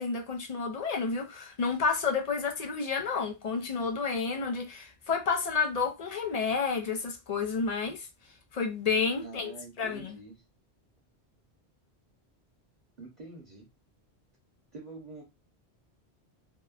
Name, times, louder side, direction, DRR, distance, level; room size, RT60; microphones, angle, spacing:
voice 1, 0.0-8.1 8.5-9.5 9.8-10.2, left 5 dB, 55° left, 0.4 m, -30 dB
voice 2, 9.2-10.3 13.0-13.7 14.7-15.2, right 3 dB, 45° right, 0.9 m, -46 dB
2.8 x 2.1 x 2.3 m
omnidirectional pair, 1.1 m